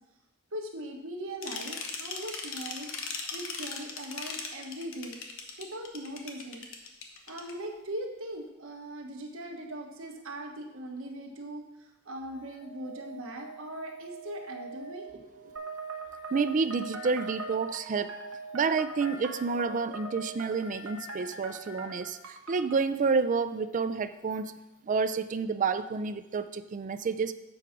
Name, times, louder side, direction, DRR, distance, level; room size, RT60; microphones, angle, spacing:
voice 1, 0.5-5.2 5.6-6.7 7.3-15.5, right 1 dB, 70° right, 2 dB, 1.3 m, -40 dB
sound 1, 1.4-7.5, left 5 dB, 65° left, 1.1 m, -38 dB
sound 2, 12.2-22.0 24.3-24.4, right 2 dB, 45° left, 0.7 m, -47 dB
sound 3, 15.6-22.8, right 3 dB, 85° right, 1.1 m, -42 dB
voice 2, 16.3-18.1 18.5-24.5 24.8-27.3, right 5 dB, 40° right, 11 dB, 0.4 m, -29 dB
7.9 x 4.7 x 5.9 m, 0.97 s
head